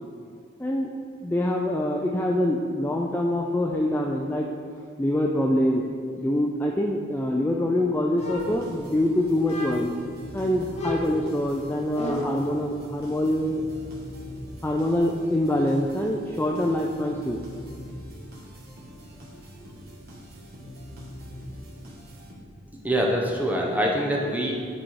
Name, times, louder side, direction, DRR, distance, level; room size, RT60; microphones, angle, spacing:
voice 1, 1.2-4.5 5.0-9.9 10.3-13.6 14.6-17.4, left 1 dB, 10° left, 0 dB, 0.3 m, -25 dB
sound 1, 8.2-9.0 9.4-10.1 10.7-12.5, left 2 dB, 35° left, 0.8 m, -33 dB
sound 2, 8.2-22.7, equal, 50° right, 1.6 m, -43 dB
voice 2, 22.8-24.5, equal, 10° right, -2 dB, 0.8 m, -24 dB
9.0 x 4.2 x 4.6 m, 2.1 s
head